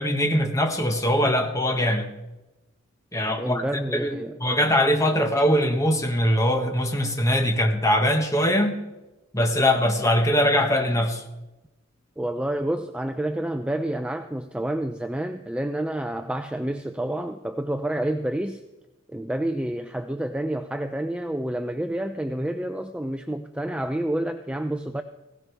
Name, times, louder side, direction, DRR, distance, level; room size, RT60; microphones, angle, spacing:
voice 1, 0.0-2.1 3.1-3.6 3.9-8.8 9.3-11.2, equal, 15° left, 4 dB, 1.3 m, -22 dB
voice 2, 3.4-4.4 12.2-18.6 19.1-25.0, right 1 dB, 5° right, 7 dB, 0.4 m, -29 dB
17.0 x 16.5 x 3.4 m, 1.0 s
head